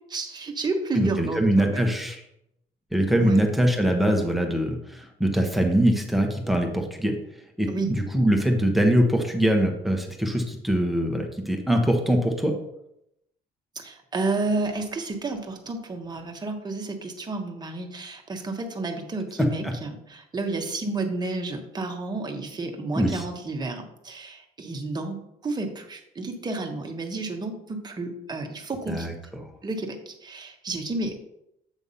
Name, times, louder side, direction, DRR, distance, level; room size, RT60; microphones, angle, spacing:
voice 1, 0.1-1.9 3.2-3.5 7.7-8.0 13.7-25.2 25.4-29.1 29.6-31.2, right 3 dB, 25° right, 3 dB, 1.2 m, -31 dB
voice 2, 0.9-2.2 2.9-7.1 7.6-12.5 19.6-19.7 22.9-23.2 28.9-29.4, right 1 dB, ahead, 3 dB, 1.2 m, -23 dB
8.2 x 3.5 x 5.6 m, 0.81 s
cardioid pair, 110°, 17 cm